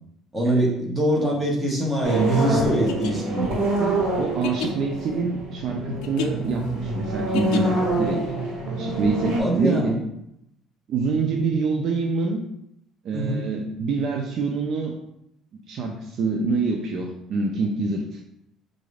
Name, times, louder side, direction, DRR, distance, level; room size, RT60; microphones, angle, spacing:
voice 1, 0.3-3.5 9.4-9.9 13.1-13.5, right 1 dB, 15° right, -3 dB, 1.1 m, -23 dB
sound 1, 2.0-9.4, right 2 dB, 90° right, 1.3 m, -26 dB
sound 2, 2.9-8.0, left 8 dB, 85° left, 0.4 m, -33 dB
voice 2, 3.8-8.2 8.7-10.0 10.9-12.4 13.0-14.9 15.7-18.2, right 4 dB, 55° right, 2 dB, 0.4 m, -26 dB
4.6 x 2.6 x 3.2 m, 0.79 s
cardioid pair, 135°, 0 cm